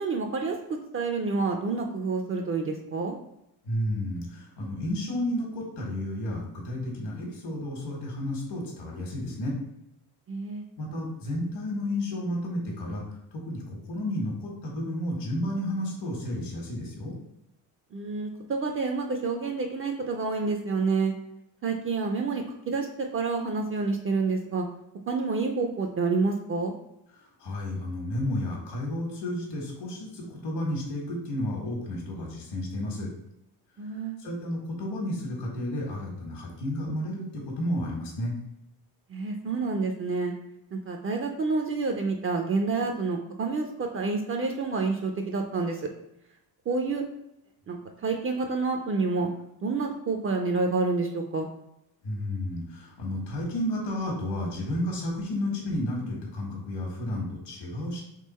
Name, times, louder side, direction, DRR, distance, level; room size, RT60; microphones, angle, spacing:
voice 1, 0.0-3.2 10.3-10.6 17.9-21.1 21.6-22.9 23.1-24.6 25.1-26.7 33.8-34.2 39.1-40.3 40.7-45.9 46.7-47.0 47.7-49.3 49.6-51.5, right 4 dB, 35° right, 3 dB, 0.4 m, -28 dB
voice 2, 3.6-9.5 10.8-13.0 13.3-17.1 27.2-33.1 34.2-38.3 52.0-58.0, left 1 dB, 70° left, -2 dB, 1.5 m, -32 dB
3.7 x 3.3 x 4.1 m, 0.82 s
cardioid pair, 140°, 41 cm